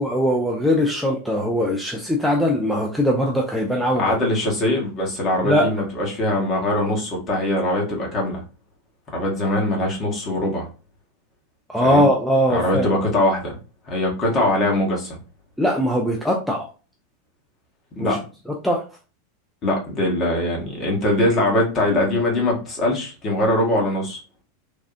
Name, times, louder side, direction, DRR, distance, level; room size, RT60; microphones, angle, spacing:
voice 1, 0.0-4.1 5.4-5.7 11.7-12.9 15.6-16.7 18.0-18.2 18.5-18.8, equal, ahead, -2 dB, 0.5 m, -21 dB
voice 2, 4.0-8.4 9.1-10.7 11.8-12.1 12.5-13.5 13.9-15.2 17.9-18.2 19.6-24.2, left 1 dB, 30° left, -1 dB, 1.3 m, -22 dB
3.4 x 2.4 x 2.4 m, 0.34 s
figure-of-eight pair, 85°, 0 cm